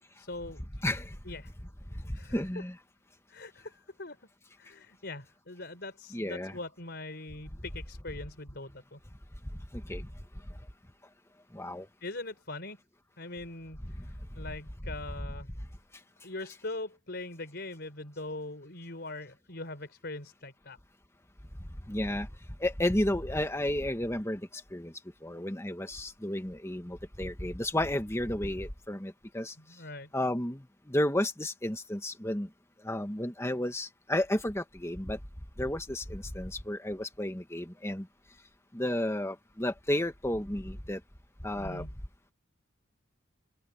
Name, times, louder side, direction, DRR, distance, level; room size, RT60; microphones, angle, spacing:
voice 1, 0.2-0.8 1.3-1.5 2.1-2.4 3.3-4.2 4.6-9.0 12.0-12.8 13.2-15.5 16.2-20.8 29.6-30.1 41.6-42.0, left 2 dB, 50° left, 4.6 m, -42 dB
voice 2, 2.3-2.7 6.1-6.5 9.7-10.0 11.5-11.8 21.9-22.3 22.6-24.4 24.7-24.9 25.2-29.5 30.1-30.6 30.9-32.5 32.8-35.2 35.6-38.0 38.7-41.0 41.4-41.8, left 1 dB, 15° left, 1.5 m, -32 dB
open air
head